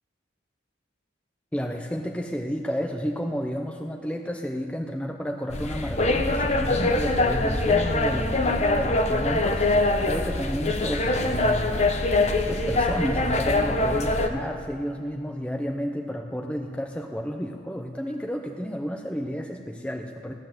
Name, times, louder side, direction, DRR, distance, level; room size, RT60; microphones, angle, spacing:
voice 1, 1.5-11.7 12.4-20.3, equal, 5° left, 2 dB, 0.7 m, -31 dB
sound 1, 5.5-14.3, left 2 dB, 35° left, 1.0 m, -23 dB
15.5 x 12.0 x 7.6 m, 2.1 s
head